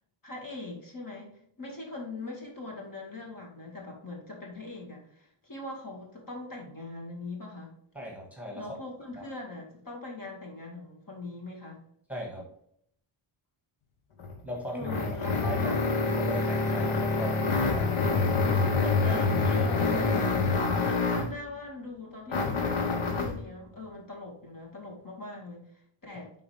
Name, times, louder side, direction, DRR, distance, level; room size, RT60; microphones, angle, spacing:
voice 1, 0.2-7.7 8.5-11.8 14.7-15.9 19.6-26.3, left 2 dB, 40° left, -1 dB, 2.1 m, -41 dB
voice 2, 7.9-8.7 9.2-9.3 12.1-12.4 14.4-14.9 15.4-15.7 16.0-18.2 18.4-19.7, equal, 5° right, -2 dB, 1.7 m, -38 dB
sound 1, 14.2-21.4 22.3-23.4, left 3 dB, 75° left, 1.1 m, -26 dB
10.5 x 3.9 x 3.4 m, 0.67 s
wide cardioid pair, 160°, 49 cm